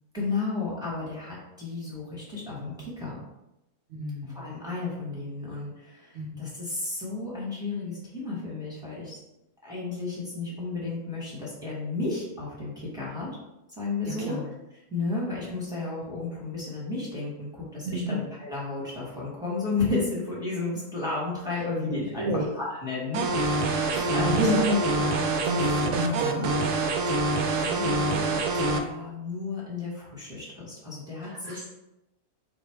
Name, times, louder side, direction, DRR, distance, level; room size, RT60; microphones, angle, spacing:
voice 1, 0.1-3.2 4.3-9.2 9.6-13.4 13.8-14.4 14.9-24.6 25.0-25.3 27.1-27.2 27.5-31.7, left 3 dB, 5° right, -7 dB, 1.1 m, -33 dB
voice 2, 3.9-4.4 6.1-6.3 14.1-14.4 17.8-18.2 22.2-22.5 23.9-25.0 25.4-26.6 31.2-31.7, equal, 60° right, -1 dB, 0.9 m, -30 dB
sound 1, 23.1-28.8, right 2 dB, 80° right, 1.1 m, -25 dB
3.5 x 2.4 x 4.4 m, 0.92 s
omnidirectional pair, 1.7 m